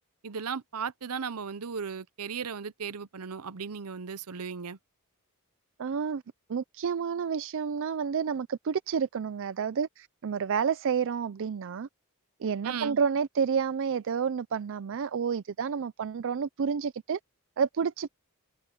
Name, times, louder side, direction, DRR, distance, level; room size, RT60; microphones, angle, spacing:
voice 1, 0.2-4.8 12.6-13.0, right 6 dB, 80° right, 0.8 m, -36 dB
voice 2, 5.8-6.2 6.5-11.9 12.4-17.2 17.6-18.1, right 6 dB, 60° right, 0.4 m, -30 dB
head